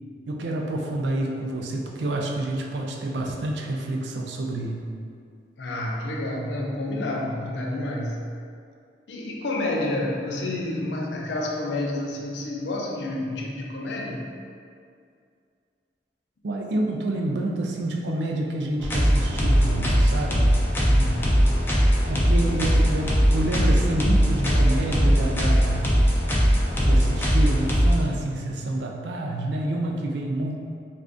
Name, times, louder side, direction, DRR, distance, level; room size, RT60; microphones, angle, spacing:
voice 1, 0.3-4.9 16.4-20.6 22.1-25.9 26.8-30.6, right 1 dB, 80° right, 0 dB, 0.4 m, -28 dB
voice 2, 5.6-8.2 9.1-14.2 20.9-21.5, left 1 dB, 80° left, -1 dB, 0.5 m, -29 dB
sound 1, 18.8-27.9, equal, 10° left, 0.4 m, -20 dB
2.5 x 2.4 x 3.4 m, 2.3 s
head